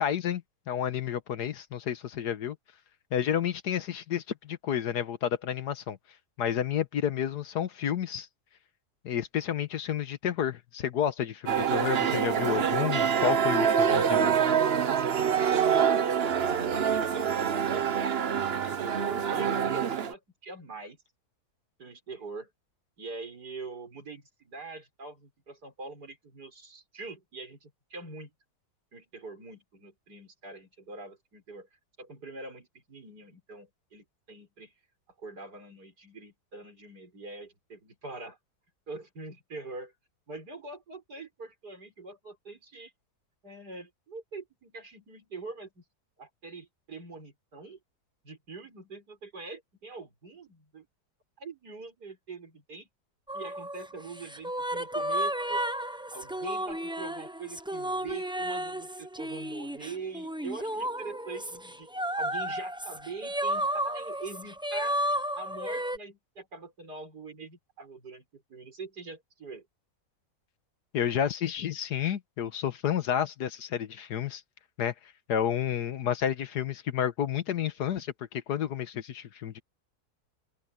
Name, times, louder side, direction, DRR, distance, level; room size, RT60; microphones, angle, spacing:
voice 1, 0.0-2.6 3.1-6.0 6.4-8.3 9.0-14.4 18.6-18.7 70.9-74.4 74.8-74.9 75.3-79.6, left 9 dB, 90° left, 1.7 m, -30 dB
sound 1, 11.5-20.1, right 7 dB, 45° right, 1.0 m, -26 dB
voice 2, 15.7-16.1 16.6-21.0 21.8-22.5 23.0-28.3 28.9-31.7 32.0-34.7 35.2-38.4 38.9-39.9 40.3-42.9 43.4-45.8 46.2-47.8 48.2-50.9 51.4-52.9 53.3-55.6 56.1-61.9 62.1-65.0 65.3-69.7, right 3 dB, 85° right, 6.0 m, -43 dB
sound 2, 53.3-66.0, right 1 dB, 5° right, 0.4 m, -33 dB
omnidirectional pair, 1.7 m